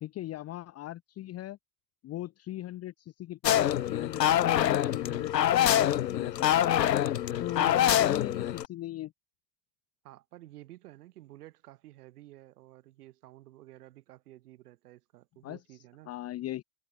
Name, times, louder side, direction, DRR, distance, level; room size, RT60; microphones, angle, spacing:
voice 1, 0.0-1.6 2.0-6.6 7.4-9.1 15.4-15.8 16.1-16.6, left 14 dB, 30° left, 0.9 m, -39 dB
sound 1, 3.4-8.7, left 11 dB, 85° left, 0.7 m, -25 dB
voice 2, 10.0-16.1, right 16 dB, 65° right, 6.8 m, -52 dB
figure-of-eight pair, 75°, 48 cm